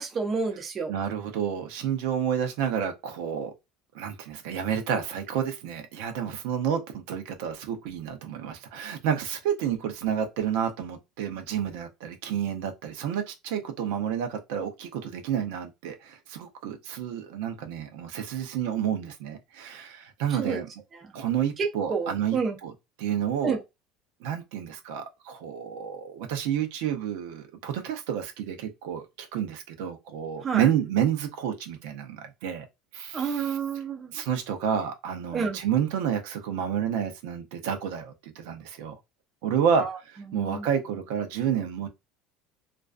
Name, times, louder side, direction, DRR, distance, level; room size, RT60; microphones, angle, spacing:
voice 1, 0.0-0.9 20.4-20.6 21.9-22.6 23.4-23.6 30.4-30.6 33.1-34.1 35.3-35.6 39.8-39.9 40.3-40.7, right 5 dB, 25° right, 0.5 m, -29 dB
voice 2, 0.9-3.5 3.9-20.7 21.1-22.7 23.0-23.6 24.2-32.6 32.9-33.6 34.1-38.9 39.4-41.9, right 8 dB, 80° right, 0.6 m, -30 dB
2.4 x 2.2 x 2.4 m
cardioid pair, 160°, 0 cm